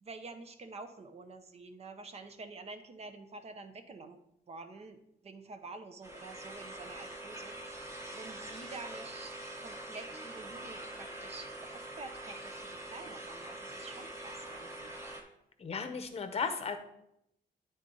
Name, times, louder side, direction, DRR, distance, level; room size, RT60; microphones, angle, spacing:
voice 1, 0.0-4.2 4.5-9.3 9.6-14.9, right 3 dB, 40° right, 8 dB, 0.6 m, -48 dB
sound 1, 6.0-15.2, right 1 dB, 15° right, 1.1 m, -44 dB
voice 2, 15.6-16.8, left 5 dB, 40° left, 8 dB, 0.7 m, -35 dB
9.6 x 3.8 x 3.8 m, 0.80 s
cardioid pair, 130°, 16 cm